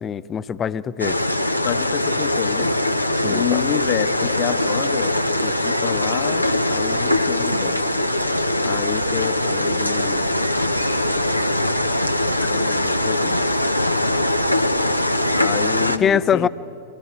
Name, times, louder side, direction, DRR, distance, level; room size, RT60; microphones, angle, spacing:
voice 1, 0.0-1.2 3.2-3.6 16.0-16.5, left 8 dB, 25° left, 17 dB, 0.6 m, -22 dB
sound 1, 1.0-16.0, left 1 dB, 90° left, 0.8 m, -21 dB
voice 2, 1.6-2.7 3.3-7.8 8.6-10.2 12.4-13.4 15.4-16.5, left 11 dB, 50° left, 10 dB, 1.2 m, -28 dB
25.0 x 16.5 x 9.7 m, 2.7 s
figure-of-eight pair, 90°, 0 cm